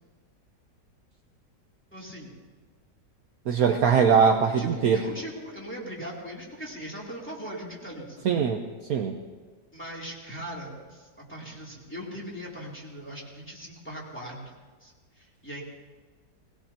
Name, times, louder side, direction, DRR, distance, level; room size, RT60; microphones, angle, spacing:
voice 1, 1.9-2.4 4.5-8.3 9.7-14.4 14.8-15.6, equal, 5° left, -5 dB, 2.8 m, -40 dB
voice 2, 3.5-5.0 8.2-8.6 8.9-9.2, right 6 dB, 65° right, 3 dB, 1.1 m, -21 dB
20.5 x 17.0 x 2.8 m, 1.4 s
omnidirectional pair, 1.9 m